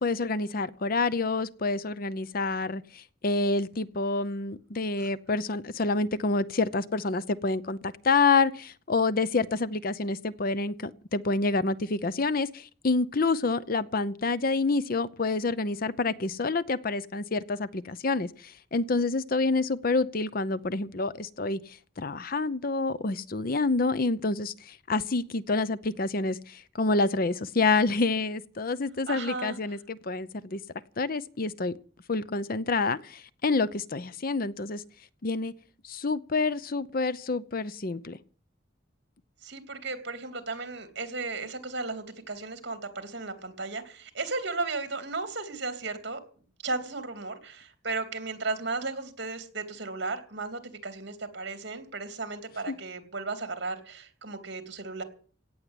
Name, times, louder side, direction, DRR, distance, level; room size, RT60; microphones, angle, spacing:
voice 1, 0.0-21.6 22.0-30.6 31.0-31.7 32.1-34.8 35.2-35.5 35.9-38.2 52.7-52.8, left 3 dB, 50° left, 16 dB, 0.7 m, -28 dB
voice 2, 29.1-29.6 39.4-46.2 46.6-55.0, right 3 dB, 60° right, 8 dB, 3.0 m, -35 dB
17.5 x 7.3 x 9.8 m, 0.42 s
head